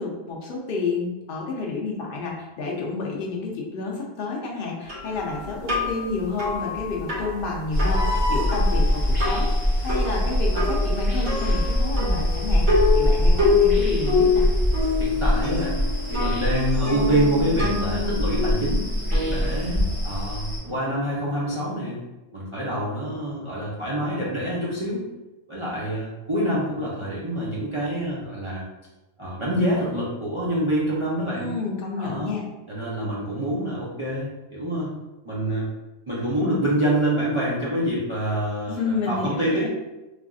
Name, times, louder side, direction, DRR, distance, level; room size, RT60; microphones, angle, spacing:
voice 1, 0.0-9.5 9.8-12.7 12.9-14.5 31.3-32.4 38.7-39.7, left 4 dB, 55° left, -1 dB, 0.7 m, -30 dB
sound 1, 4.9-20.2, left 4 dB, 85° right, 1.5 m, -27 dB
sound 2, 7.7-20.6, equal, 15° right, 0.9 m, -23 dB
voice 2, 15.0-15.8 16.1-18.8 19.3-22.0 22.3-25.0 25.5-28.6 29.2-31.5 32.0-32.3 32.7-34.9 35.2-35.7 36.1-39.7, right 1 dB, 40° right, -8 dB, 0.4 m, -26 dB
3.3 x 2.5 x 2.3 m, 1.0 s
omnidirectional pair, 1.4 m